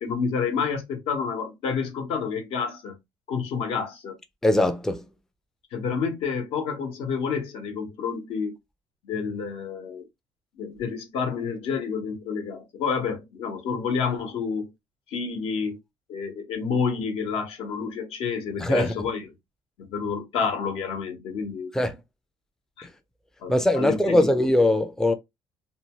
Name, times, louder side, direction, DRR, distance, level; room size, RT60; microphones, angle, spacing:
voice 1, 0.0-2.9 3.3-4.2 5.7-8.6 9.0-10.0 10.6-14.7 15.1-15.8 16.1-19.3 19.8-21.7 22.8-22.9 23.4-24.3, left 5 dB, 75° left, 0.9 m, -29 dB
voice 2, 4.4-5.0 18.6-18.9 21.7-22.0 23.5-25.1, left 1 dB, 5° left, 0.4 m, -21 dB
2.7 x 2.2 x 2.9 m
cardioid pair, 145°, 10 cm